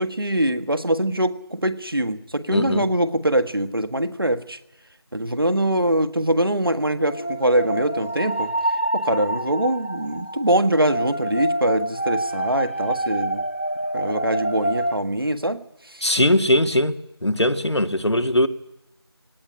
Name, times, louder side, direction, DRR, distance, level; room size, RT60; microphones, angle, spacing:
voice 1, 0.0-4.6 5.1-8.5 8.9-13.4 13.9-16.0, right 1 dB, 60° right, 1.5 m, -23 dB
voice 2, 2.5-2.8 16.0-17.0 17.2-18.5, left 1 dB, 85° left, 1.9 m, -20 dB
sound 1, 7.0-15.0, right 1 dB, 25° left, 0.8 m, -27 dB
18.5 x 18.5 x 9.9 m
figure-of-eight pair, 180°, 14 cm